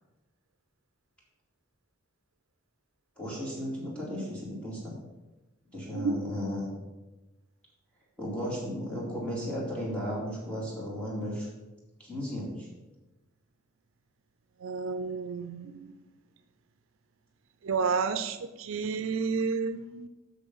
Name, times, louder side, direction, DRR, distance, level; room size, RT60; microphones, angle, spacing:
voice 1, 3.2-5.0 5.7-6.7 8.2-11.5 12.0-12.7, equal, 5° left, -5 dB, 2.5 m, -35 dB
voice 2, 5.9-6.3 14.6-16.0 17.6-20.1, right 5 dB, 65° right, 10 dB, 0.4 m, -31 dB
7.1 x 6.4 x 5.5 m, 1.1 s
head